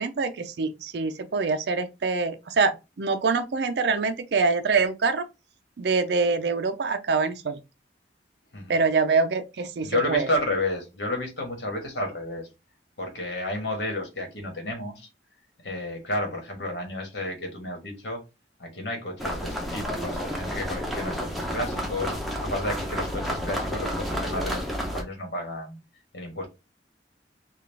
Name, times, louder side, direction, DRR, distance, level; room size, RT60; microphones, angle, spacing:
voice 1, 0.0-5.2 5.8-7.6 8.7-10.3, right 4 dB, 70° right, 0.4 m, -25 dB
voice 2, 9.8-12.5 13.0-15.1 15.6-18.2 18.6-22.1 22.4-25.8 26.1-26.5, left 1 dB, 75° left, 1.4 m, -31 dB
sound 1, 19.2-25.0, equal, ahead, 0.7 m, -31 dB
3.9 x 2.4 x 3.3 m
head